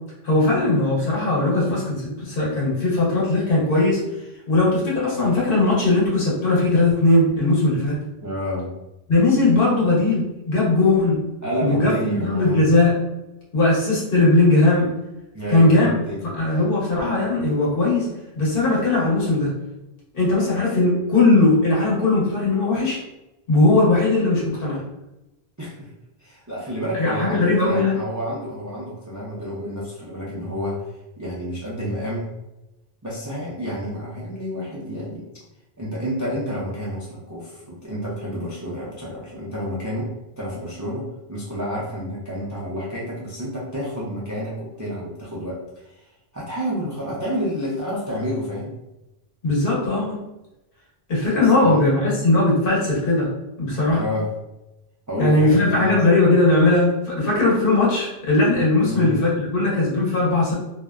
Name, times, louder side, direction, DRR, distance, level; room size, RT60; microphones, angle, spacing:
voice 1, 0.2-4.0 4.5-8.0 9.1-11.2 11.6-12.9 13.5-14.9 15.5-15.9 16.2-18.1 18.3-19.5 20.1-23.0 23.5-24.8 27.0-28.0 49.4-50.2 51.1-53.3 53.6-54.0 55.2-60.5, left 2 dB, 60° left, -5 dB, 1.1 m, -19 dB
voice 2, 8.2-8.7 11.4-12.6 15.3-16.2 25.6-25.9 26.2-32.3 33.0-35.2 35.8-40.1 40.4-46.1 46.3-48.7 51.3-51.8 53.9-54.3 55.1-55.9 58.8-59.1, equal, 30° right, -7 dB, 0.3 m, -29 dB
2.5 x 2.1 x 2.3 m, 0.95 s
omnidirectional pair, 1.1 m